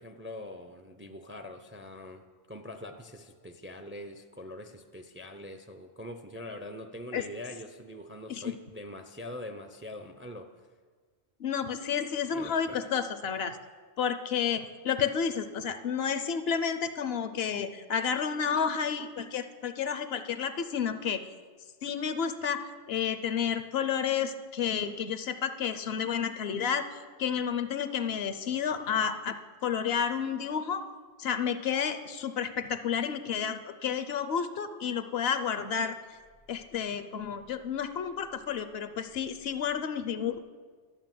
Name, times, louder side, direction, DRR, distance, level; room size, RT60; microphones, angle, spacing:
voice 1, 0.0-10.5 12.3-12.9, left 1 dB, 15° right, 7 dB, 0.4 m, -43 dB
voice 2, 11.4-13.6 14.0-21.3 21.8-30.8 31.2-35.9 36.5-40.4, left 7 dB, 65° left, 10 dB, 0.9 m, -31 dB
12.0 x 7.4 x 7.5 m, 1.6 s
omnidirectional pair, 1.1 m